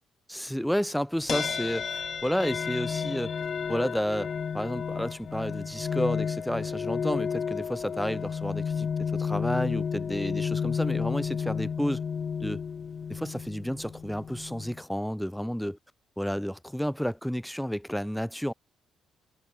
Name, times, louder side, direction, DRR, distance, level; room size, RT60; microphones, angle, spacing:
voice 1, 0.3-3.4 3.7-12.0 12.4-12.6 13.1-15.8 16.2-18.5, equal, ahead, 1.9 m, -31 dB
sound 1, 1.3-14.8, left 6 dB, 45° left, 1.5 m, -32 dB
cardioid pair, 90°, 0 cm